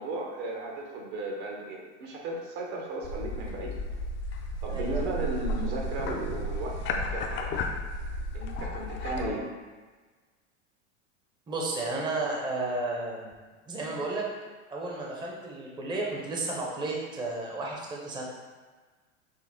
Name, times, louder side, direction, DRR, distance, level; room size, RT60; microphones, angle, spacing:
voice 1, 0.0-3.7 4.6-7.6 8.3-9.4, right 2 dB, 65° right, -1 dB, 1.1 m, -35 dB
sound 1, 3.0-9.3, left 1 dB, 35° left, 0.5 m, -33 dB
voice 2, 4.7-5.0 9.2-9.4 11.5-13.3 13.7-14.3 14.7-18.2, right 2 dB, 10° right, -2 dB, 0.6 m, -33 dB
6.1 x 2.1 x 3.6 m, 1.4 s
hypercardioid pair, 105°, 36 cm